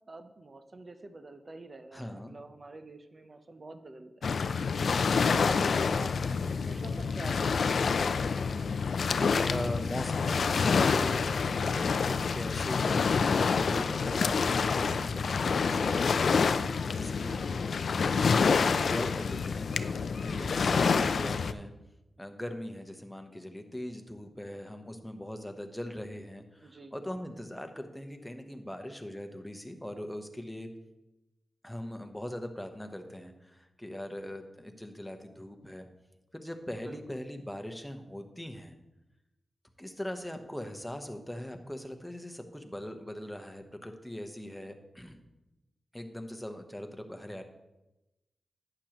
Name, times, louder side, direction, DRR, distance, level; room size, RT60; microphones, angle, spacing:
voice 1, 0.1-4.1 4.8-7.9 17.1-17.6 26.6-27.0 36.8-37.0, right 2 dB, 40° right, 8 dB, 0.7 m, -47 dB
voice 2, 1.9-2.3 8.7-17.3 17.7-17.9 18.6-21.7 22.2-30.7 31.6-35.9 36.3-38.8 39.8-45.2 45.9-47.4, left 1 dB, 5° left, 5 dB, 1.0 m, -40 dB
Waves surf, 4.2-21.5, left 5 dB, 75° left, 0.4 m, -27 dB
11.5 x 8.9 x 3.0 m, 0.96 s
wide cardioid pair, 85°, 0 cm